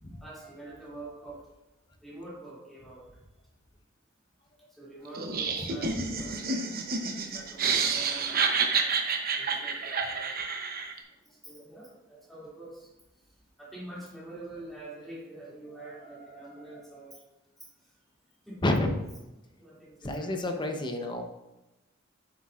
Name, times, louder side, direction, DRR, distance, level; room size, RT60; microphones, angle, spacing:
voice 1, 0.2-1.5 2.0-3.1 4.7-6.7 7.0-8.4 9.4-10.7 11.3-12.9 13.6-17.2 17.8-17.9 18.5-18.7 19.6-20.6, right 2 dB, ahead, -7 dB, 2.6 m, -45 dB
Laughter, 5.1-11.0, right 5 dB, 45° right, 0.8 m, -29 dB
voice 2, 5.6-6.0 18.6-19.0 20.0-21.2, left 1 dB, 20° left, 4 dB, 0.8 m, -30 dB
8.6 x 7.8 x 2.5 m, 1.0 s
head